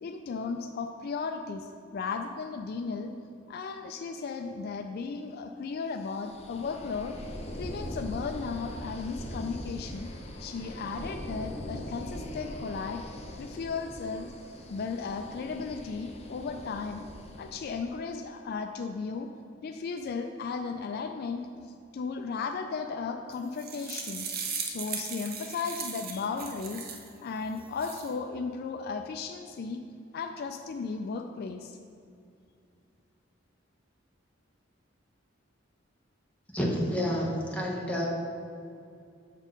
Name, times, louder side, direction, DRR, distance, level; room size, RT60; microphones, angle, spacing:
voice 1, 0.0-3.1 3.5-10.1 10.4-13.0 13.4-14.3 14.7-17.1 17.4-19.3 19.6-21.5 21.9-24.3 24.6-26.9 27.2-29.8 30.1-31.8, left 5 dB, 50° left, 5 dB, 0.3 m, -35 dB
sound 1, 6.1-17.8, equal, 35° left, 0.7 m, -41 dB
sound 2, 23.3-27.1 27.6-28.1, right 6 dB, 50° right, 0.6 m, -37 dB
voice 2, 36.5-38.1, equal, 5° left, -3 dB, 1.0 m, -29 dB
7.0 x 4.4 x 5.2 m, 2.5 s
head